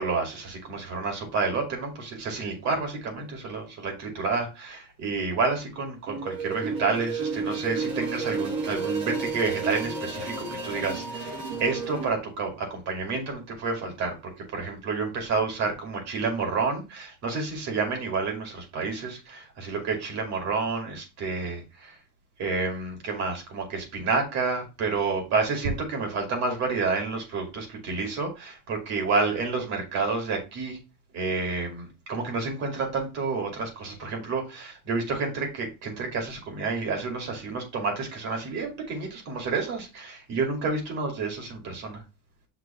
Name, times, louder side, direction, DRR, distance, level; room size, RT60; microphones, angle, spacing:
voice 1, 0.0-14.1 14.5-22.0 22.4-30.8 31.1-42.0, right 4 dB, 50° right, 2 dB, 2.5 m, -29 dB
sound 1, 6.1-12.1, right 4 dB, 75° right, 3.2 m, -31 dB
6.0 x 3.3 x 5.7 m, 0.27 s
cardioid pair, 175°, 34 cm